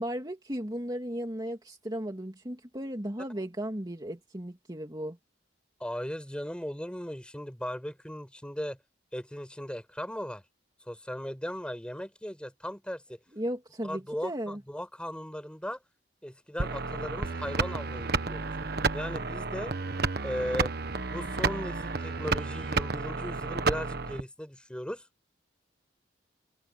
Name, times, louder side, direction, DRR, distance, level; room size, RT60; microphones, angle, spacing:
voice 1, 0.0-5.2 13.3-14.6, equal, 20° right, 2.5 m, -35 dB
voice 2, 5.8-8.8 9.1-10.4 10.9-13.2 13.8-15.8 16.2-18.6 18.9-19.7 20.2-20.7 21.1-25.1, equal, 5° left, 5.8 m, -37 dB
sound 1, 16.6-24.2, right 4 dB, 55° right, 1.3 m, -31 dB
head